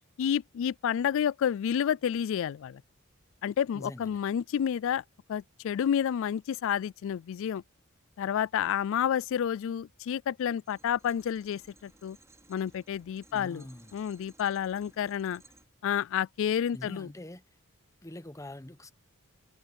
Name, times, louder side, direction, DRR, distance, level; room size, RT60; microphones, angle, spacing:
voice 1, 0.2-2.8 3.4-5.0 5.3-7.6 8.2-12.2 12.5-13.6 13.9-15.4 15.8-17.1, left 9 dB, 65° left, 0.3 m, -30 dB
voice 2, 3.7-4.2 13.3-13.9 16.7-17.4 18.0-18.9, left 1 dB, 15° left, 0.9 m, -44 dB
sound 1, 10.7-15.7, right 2 dB, 15° right, 4.4 m, -60 dB
head